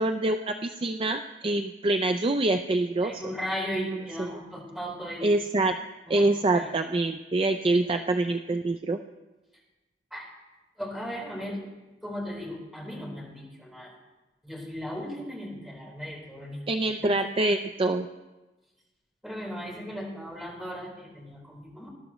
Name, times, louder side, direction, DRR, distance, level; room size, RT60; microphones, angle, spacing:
voice 1, 0.0-3.2 3.9-4.3 5.2-5.8 6.1-9.0 16.7-18.1, right 2 dB, 30° right, 7 dB, 0.4 m, -25 dB
voice 2, 3.0-5.3 6.1-6.3 6.5-6.7 10.1-10.3 10.8-11.6 12.0-13.9 14.4-16.6 17.0-17.2 19.2-21.9, equal, 5° right, -4 dB, 4.2 m, -36 dB
20.5 x 12.0 x 3.1 m, 1.1 s
head